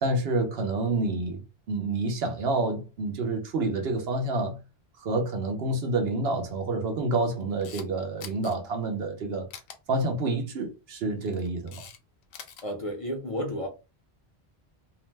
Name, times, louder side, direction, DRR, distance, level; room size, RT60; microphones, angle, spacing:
voice 1, 0.0-4.6 5.0-9.5 9.9-11.8, right 2 dB, 70° right, 0.9 m, -28 dB
Camera, 7.4-7.9 8.2-8.5 9.5-9.8 11.1-12.0 12.2-12.6, left 7 dB, 75° left, 0.9 m, -44 dB
voice 2, 12.6-13.7, equal, 40° left, 0.6 m, -32 dB
2.7 x 2.1 x 3.1 m
omnidirectional pair, 1.1 m